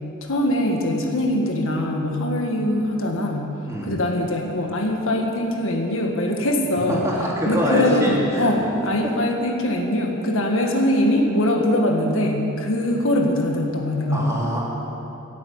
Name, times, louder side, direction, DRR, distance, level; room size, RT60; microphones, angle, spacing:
voice 1, 0.2-3.5 3.8-7.0 7.5-14.3, left 1 dB, 60° left, 1 dB, 1.7 m, -22 dB
voice 2, 3.7-4.0 6.9-8.5 9.0-9.1 14.1-14.6, equal, 15° right, -5 dB, 2.8 m, -24 dB
15.5 x 8.3 x 9.2 m, 2.9 s
head